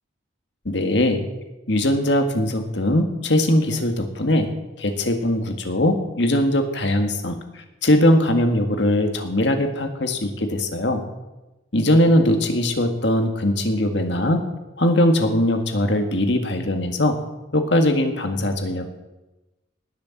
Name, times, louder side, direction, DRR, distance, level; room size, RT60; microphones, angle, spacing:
voice 1, 0.7-1.2 1.7-4.5 4.8-7.4 7.8-11.0 11.7-14.4 14.8-17.2 17.5-18.9, left 1 dB, 60° left, 5 dB, 1.9 m, -20 dB
19.5 x 6.9 x 7.2 m, 1.1 s
head